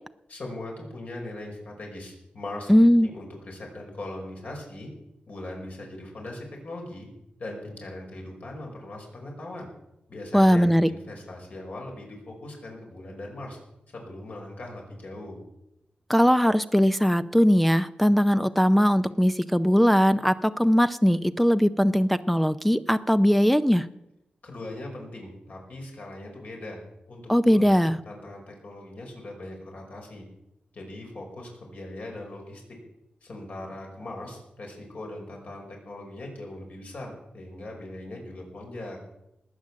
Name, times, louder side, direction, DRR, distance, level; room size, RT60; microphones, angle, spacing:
voice 1, 0.3-4.9 5.3-7.1 7.4-9.7 10.1-13.6 13.9-15.4 24.4-26.8 27.1-30.2 30.7-32.8 33.2-39.0, left 1 dB, 55° left, 0 dB, 5.2 m, -40 dB
voice 2, 2.7-3.1 10.3-10.9 16.1-23.9 27.3-28.0, equal, 5° left, 12 dB, 0.5 m, -20 dB
19.5 x 9.2 x 7.4 m, 0.87 s
wide cardioid pair, 130°, 3 cm